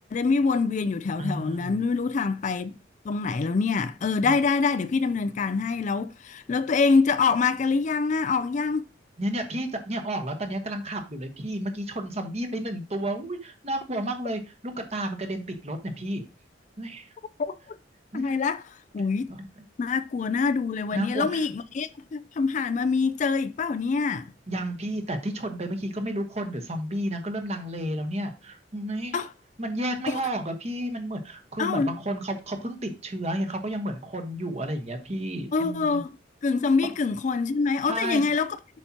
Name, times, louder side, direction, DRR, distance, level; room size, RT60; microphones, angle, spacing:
voice 1, 0.1-2.8 3.0-8.8 17.4-17.8 18.1-18.6 18.9-19.3 19.8-24.2 29.1-29.3 30.1-30.2 31.6-32.0 35.5-36.1 36.4-38.6, left 4 dB, 40° left, 0.3 m, -25 dB
voice 2, 1.2-1.8 4.2-4.4 9.2-16.2 16.8-17.1 18.1-18.4 19.3-19.6 20.9-21.5 24.5-29.2 29.6-36.0 37.9-38.2, right 1 dB, 35° right, 1.1 m, -32 dB
7.7 x 5.8 x 2.9 m
head